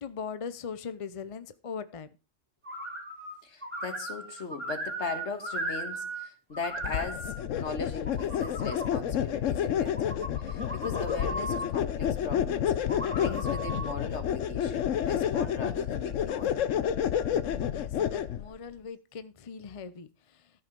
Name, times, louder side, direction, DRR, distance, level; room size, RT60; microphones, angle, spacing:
voice 1, 0.0-2.1 17.7-20.5, left 6 dB, 35° left, 0.6 m, -40 dB
sound 1, 2.6-3.4 3.6-6.3 6.5-7.4 7.9-8.9 9.8-11.7 12.8-13.9, right 1 dB, 10° right, 2.8 m, -37 dB
voice 2, 3.4-12.7 13.1-16.5, left 4 dB, 65° left, 1.8 m, -39 dB
sound 2, 6.8-18.5, left 9 dB, 85° left, 1.1 m, -30 dB
14.0 x 5.6 x 5.3 m
omnidirectional pair, 1.3 m